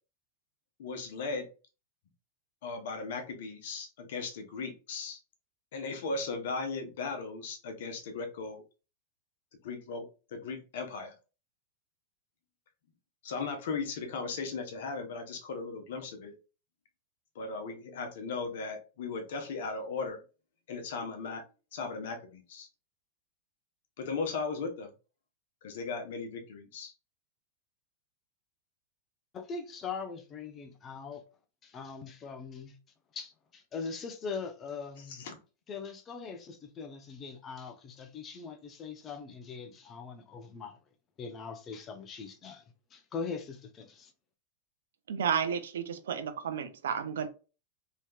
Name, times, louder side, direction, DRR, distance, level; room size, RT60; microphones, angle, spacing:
voice 1, 0.8-1.5 2.6-5.2 5.7-8.6 9.6-11.1 13.2-16.3 17.3-20.2 20.7-22.7 24.0-24.9 25.6-26.9 35.0-35.4, left 4 dB, 65° left, 0.9 m, -37 dB
voice 2, 29.3-31.2 31.6-32.8 33.1-35.2 35.7-40.8 41.2-42.6 42.9-44.1, left 5 dB, 30° left, 0.7 m, -41 dB
voice 3, 45.1-47.3, right 7 dB, 70° right, 0.5 m, -32 dB
3.2 x 2.9 x 2.3 m
hypercardioid pair, 95°, 0 cm